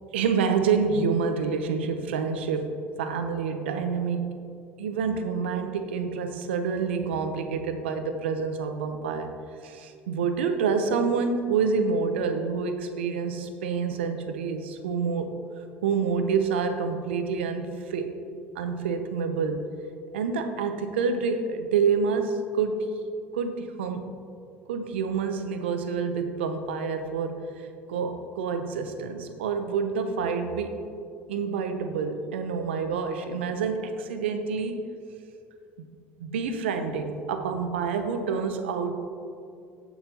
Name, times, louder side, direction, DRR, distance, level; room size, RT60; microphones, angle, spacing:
voice 1, 0.1-4.4 4.8-9.3 9.6-15.3 15.8-18.1 18.5-19.7 20.1-22.9 23.3-24.1 24.7-30.7 31.3-34.9 35.8-35.9 36.2-38.9, right 5 dB, 90° right, 7 dB, 0.8 m, -28 dB
16.5 x 5.8 x 2.9 m, 2.4 s
hypercardioid pair, 75°, 6 cm